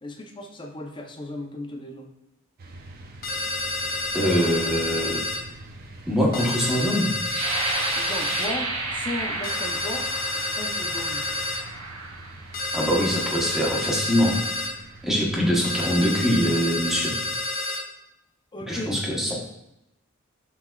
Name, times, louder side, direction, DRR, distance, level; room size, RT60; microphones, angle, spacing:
voice 1, 0.0-2.1 7.9-10.1 10.5-11.3 18.5-19.3, left 1 dB, 20° left, 2 dB, 0.5 m, -35 dB
sound 1, 2.6-17.4, right 1 dB, 45° right, 0.5 m, -45 dB
sound 2, 3.2-5.4 6.3-8.5 9.4-11.6 12.5-14.7 15.6-17.8, left 2 dB, 45° left, 0.9 m, -29 dB
voice 2, 4.1-5.2 6.1-7.1 12.7-14.4 15.0-17.2 18.7-19.4, equal, ahead, -4 dB, 0.9 m, -23 dB
sound 3, 7.2-12.9 13.6-13.7 14.2-14.6, right 3 dB, 90° right, 0.9 m, -32 dB
5.7 x 3.3 x 2.3 m, 0.86 s
head